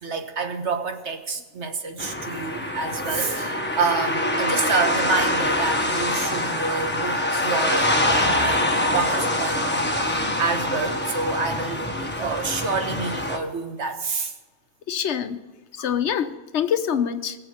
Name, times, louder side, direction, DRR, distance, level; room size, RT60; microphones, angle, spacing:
voice 1, 0.0-14.3 15.9-16.0, right 4 dB, 75° right, 6 dB, 1.5 m, -28 dB
sound 1, 2.0-13.4, left 1 dB, 10° left, 1.4 m, -24 dB
voice 2, 14.9-15.4 15.8-17.4, left 8 dB, 75° left, 10 dB, 1.1 m, -25 dB
22.0 x 7.7 x 5.1 m, 1.2 s
omnidirectional pair, 1.2 m